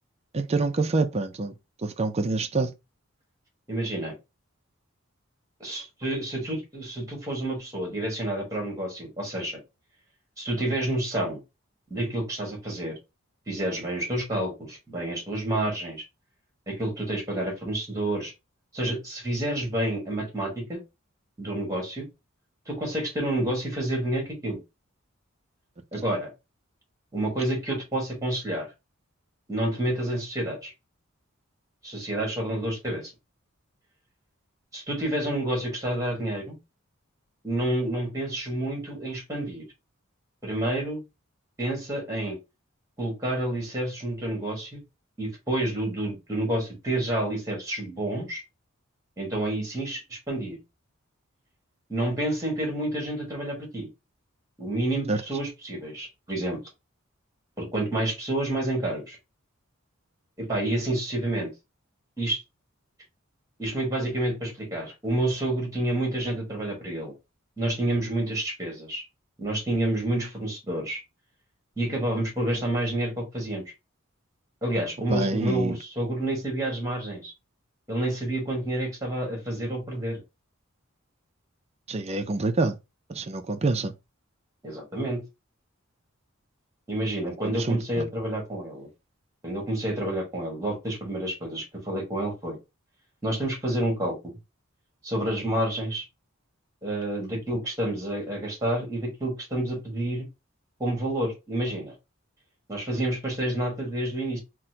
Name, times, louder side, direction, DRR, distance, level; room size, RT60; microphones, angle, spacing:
voice 1, 0.3-1.5 1.8-2.7 55.1-55.2 75.1-75.8 81.9-82.8 83.1-83.9 87.6-88.0, right 3 dB, 30° right, 0.4 m, -26 dB
voice 2, 3.7-4.1 5.6-9.6 10.4-11.4 11.9-12.9 13.5-16.0 16.7-18.3 18.7-20.8 21.4-22.1 22.7-24.6 25.9-26.3 27.1-28.7 29.5-30.7 31.8-33.1 34.7-36.6 37.4-39.6 40.4-41.0 41.6-42.4 43.0-44.8 45.2-48.4 49.2-50.6 51.9-53.9 54.6-56.6 57.6-59.2 60.4-61.5 62.2-62.4 63.6-67.1 67.6-69.0 69.4-71.0 71.8-73.6 74.6-77.3 77.9-80.2 84.6-85.2 86.9-88.9 89.4-92.6 93.2-94.4 95.0-96.1 96.8-100.3 100.8-101.9 102.7-104.4, right 1 dB, 15° right, 1.6 m, -29 dB
4.1 x 2.2 x 2.8 m
head